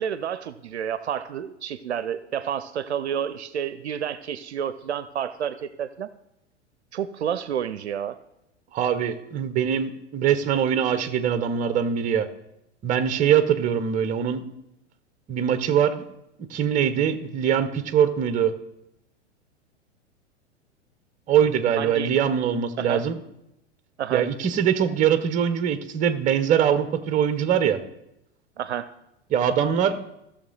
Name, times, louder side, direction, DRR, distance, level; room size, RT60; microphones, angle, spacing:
voice 1, 0.0-6.1 6.9-8.2 21.8-22.2 22.8-23.0 24.0-24.3 28.6-28.9, right 9 dB, 65° right, 14 dB, 0.6 m, -30 dB
voice 2, 8.7-12.3 12.8-14.4 15.3-16.0 16.5-18.5 21.3-23.2 24.1-27.8 29.3-30.0, right 8 dB, 20° right, 11 dB, 0.8 m, -22 dB
15.5 x 6.5 x 3.8 m, 0.84 s
figure-of-eight pair, 95°, 36 cm